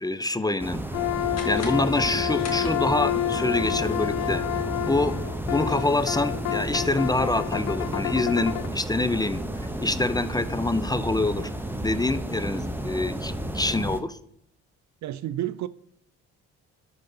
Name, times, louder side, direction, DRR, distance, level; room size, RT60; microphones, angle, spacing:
voice 1, 0.0-0.8 1.4-4.4 4.9-5.1 5.5-9.4 9.8-11.5 11.8-14.2, left 2 dB, 10° left, 0.5 m, -26 dB
sound 1, 0.6-14.0, right 1 dB, 5° right, 0.9 m, -32 dB
sound 2, 0.9-8.7, left 13 dB, 85° left, 0.5 m, -29 dB
sound 3, 1.3-3.2, left 4 dB, 50° left, 2.1 m, -41 dB
voice 2, 15.0-15.7, right 13 dB, 55° right, 0.5 m, -30 dB
11.5 x 4.0 x 3.8 m
hypercardioid pair, 55°, 34 cm